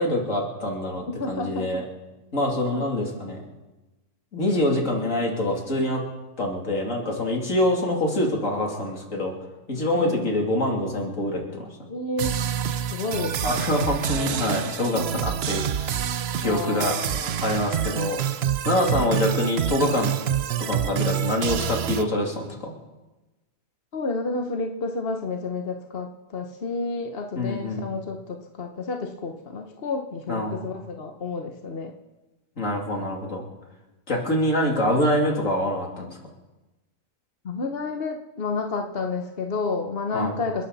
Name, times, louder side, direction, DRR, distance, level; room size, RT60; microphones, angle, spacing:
voice 1, 0.0-1.8 2.3-3.4 4.3-6.0 6.4-9.3 9.7-11.7 13.4-16.1 16.4-16.9 17.4-18.2 18.7-20.1 20.6-22.7 27.4-27.8 30.3-30.6 32.6-33.4 34.1-36.1 40.1-40.3, left 1 dB, 75° left, -1 dB, 3.5 m, -25 dB
voice 2, 1.1-1.8 2.7-3.0 7.0-7.4 7.9-8.0 9.7-10.3 11.9-12.4 12.9-13.7 14.6-15.1 16.4-17.6 19.0-19.2 23.9-31.9 35.7-35.8 37.4-40.7, left 3 dB, 50° left, 4 dB, 1.3 m, -31 dB
sound 1, 12.2-22.0, right 9 dB, 60° right, 0.8 m, -27 dB
29.5 x 11.5 x 4.2 m, 1.1 s
omnidirectional pair, 1.4 m